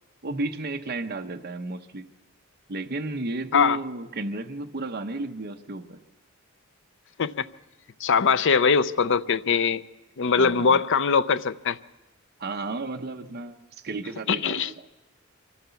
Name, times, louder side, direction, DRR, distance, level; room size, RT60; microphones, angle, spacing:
voice 1, 0.2-2.1 2.7-6.0 10.4-10.8 12.4-14.7, right 2 dB, 50° right, 0.9 m, -33 dB
voice 2, 8.0-9.8 10.2-11.8 14.3-14.7, left 5 dB, 60° left, 0.6 m, -22 dB
24.5 x 15.5 x 7.0 m
head